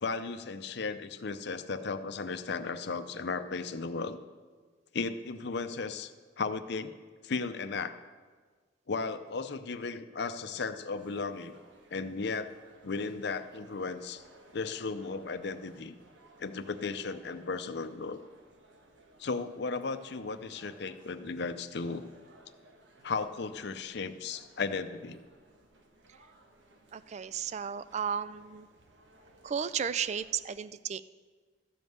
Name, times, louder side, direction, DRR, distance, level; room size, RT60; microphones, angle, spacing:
voice 1, 0.0-4.2 4.9-6.1 6.4-6.9 7.2-8.0 8.9-11.5 11.9-12.5 12.8-14.2 14.5-15.9 16.4-18.2 19.2-22.1 23.0-25.2, left 4 dB, 65° left, 10 dB, 0.6 m, -35 dB
sound 1, 11.0-30.5, right 1 dB, 85° right, 1.4 m, -60 dB
voice 2, 26.9-28.7 29.4-31.0, right 7 dB, 40° right, 15 dB, 0.3 m, -34 dB
13.5 x 5.4 x 7.8 m, 1.5 s
head